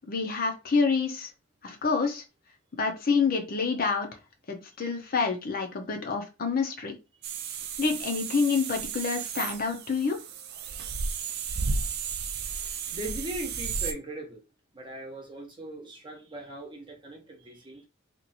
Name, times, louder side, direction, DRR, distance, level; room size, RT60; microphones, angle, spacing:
voice 1, 0.1-1.3 1.6-2.2 2.7-4.1 4.5-6.9 7.8-10.2, left 5 dB, 45° left, 0.8 m, -27 dB
sound 1, 7.2-13.9, right 5 dB, 55° right, 0.5 m, -33 dB
voice 2, 12.4-14.4 14.7-17.9, right 1 dB, 25° right, 0.9 m, -40 dB
3.0 x 2.5 x 4.1 m
head